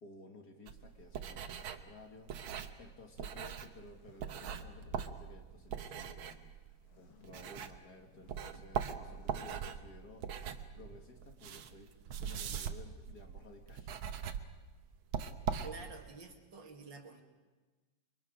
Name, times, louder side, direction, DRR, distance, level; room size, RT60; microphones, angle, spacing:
voice 1, 0.0-10.5 10.7-11.9 12.2-14.1, left 3 dB, 55° left, 3 dB, 2.4 m, -56 dB
sound 1, 0.7-8.0 8.3-16.1, right 8 dB, 85° right, 1.8 m, -41 dB
sound 2, 2.0-2.4 3.4-5.3 6.8-7.4 7.9-8.7 9.1-9.8, left 7 dB, 80° left, 2.3 m, -59 dB
voice 2, 15.6-17.2, right 4 dB, 65° right, 2 dB, 2.8 m, -49 dB
29.5 x 23.0 x 5.2 m, 1.3 s
omnidirectional pair, 2.2 m